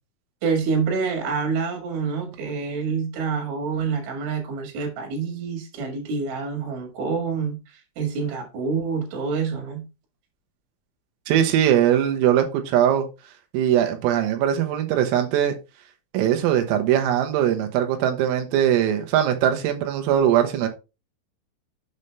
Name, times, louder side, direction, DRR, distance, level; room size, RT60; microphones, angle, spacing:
voice 1, 0.4-9.8, right 5 dB, 70° right, 4.0 m, -27 dB
voice 2, 11.3-13.1 13.5-15.6 16.1-20.7, right 10 dB, 90° right, 3.8 m, -21 dB
8.1 x 5.5 x 3.3 m
omnidirectional pair, 5.8 m